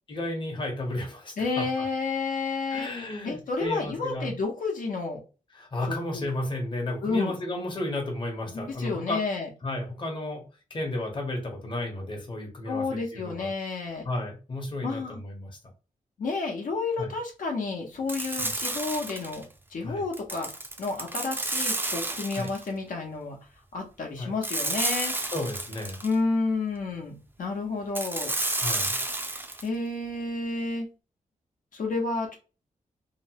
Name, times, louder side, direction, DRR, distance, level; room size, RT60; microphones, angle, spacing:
voice 1, 0.1-1.9 2.7-4.3 5.5-9.2 9.6-10.4 10.7-13.5 14.0-15.6 17.0-17.1 18.4-18.5 19.8-20.0 22.4-22.5 24.2-24.3 25.3-26.0 28.5-29.0, left 1 dB, 35° left, 1 dB, 0.8 m, -33 dB
voice 2, 1.4-2.9 3.2-5.2 5.9-6.3 7.0-7.3 8.5-9.5 12.6-14.1 14.8-15.2 16.2-19.4 19.7-20.5 20.8-23.4 23.7-25.1 26.0-28.3 29.6-30.9 31.7-32.4, left 3 dB, 75° left, 0 dB, 0.8 m, -30 dB
sound 1, 18.1-19.4 20.1-22.7 24.4-26.1 27.9-29.7, right 2 dB, 15° right, 0.4 m, -31 dB
2.8 x 2.0 x 2.8 m, 0.32 s
wide cardioid pair, 120°, 14 cm